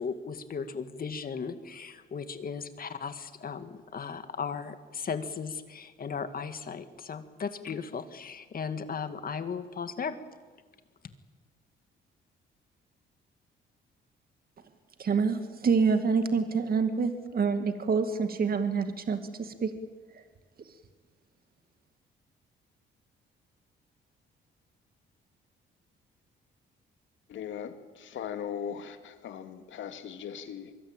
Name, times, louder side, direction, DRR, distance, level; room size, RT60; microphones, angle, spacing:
voice 1, 0.0-10.2, left 6 dB, 45° left, 2.2 m, -36 dB
voice 2, 15.0-19.7 20.1-20.2, right 5 dB, 50° right, 2.2 m, -27 dB
voice 3, 27.3-30.7, left 8 dB, 75° left, 2.5 m, -39 dB
24.5 x 23.0 x 9.0 m
cardioid pair, 90°, 20 cm